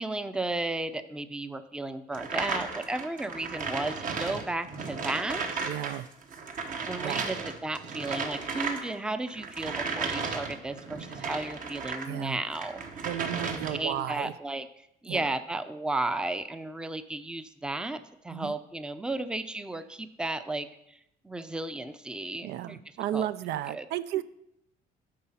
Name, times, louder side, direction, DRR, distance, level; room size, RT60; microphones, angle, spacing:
voice 1, 0.0-5.6 6.9-12.8 13.4-14.7 15.0-21.0 21.2-22.8 23.1-23.3 23.7-23.8, right 2 dB, 5° right, 11 dB, 0.5 m, -34 dB
sound 1, 2.1-12.1 12.5-14.0, right 4 dB, 50° right, 1.2 m, -35 dB
voice 2, 5.6-6.1 7.0-7.2 12.1-12.4 13.0-14.3 15.1-15.3 18.3-18.6 22.4-24.2, right 12 dB, 80° right, 14 dB, 0.4 m, -33 dB
8.7 x 5.6 x 5.6 m, 0.79 s
cardioid pair, 110°, 17 cm